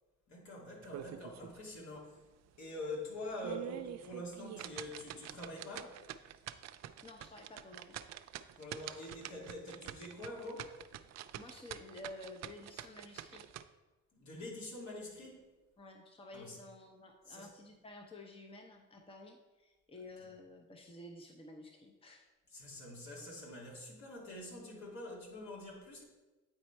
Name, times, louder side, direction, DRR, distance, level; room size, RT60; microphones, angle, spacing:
voice 1, 0.3-2.2 2.6-6.0 8.6-10.7 14.1-15.4 16.3-16.6 17.3-17.5 22.5-26.0, left 1 dB, 65° left, -3 dB, 2.4 m, -45 dB
sound 1, 0.8-1.6 2.0-2.1 2.6-2.7 3.2-13.6, right 11 dB, 60° right, 0.4 m, -47 dB
voice 2, 7.0-8.0 11.3-13.5 15.8-22.3, left 2 dB, 20° left, 3 dB, 0.8 m, -52 dB
8.8 x 4.2 x 4.5 m, 1.2 s
cardioid pair, 90°, 30 cm